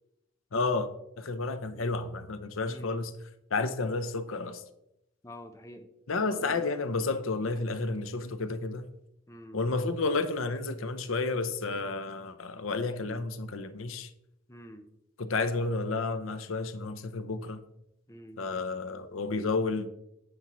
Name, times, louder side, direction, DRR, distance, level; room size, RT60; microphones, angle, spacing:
voice 1, 0.5-0.9 1.2-3.1 3.5-4.6 6.1-8.9 9.5-14.1 15.2-17.6 18.4-19.9, left 3 dB, 90° left, 0.7 m, -31 dB
voice 2, 2.7-3.0 5.2-5.9 6.2-6.6 9.3-9.6 14.5-14.9 18.1-18.4, equal, 15° left, 0.8 m, -47 dB
9.7 x 8.4 x 3.0 m
head